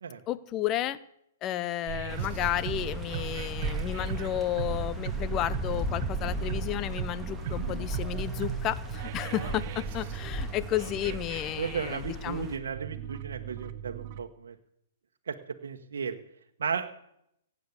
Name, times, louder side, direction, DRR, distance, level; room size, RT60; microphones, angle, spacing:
voice 1, 0.3-1.0 1.4-12.5, left 12 dB, 30° left, 17 dB, 0.8 m, -32 dB
sound 1, 1.9-14.2, right 9 dB, 50° right, 1.0 m, -38 dB
sound 2, 2.1-12.6, equal, 5° right, 2.5 m, -36 dB
voice 2, 11.6-14.5 15.3-15.4 15.6-16.1 16.6-16.9, right 6 dB, 75° right, 4 dB, 1.2 m, -34 dB
16.5 x 8.5 x 8.3 m, 0.77 s
hypercardioid pair, 130°, 0 cm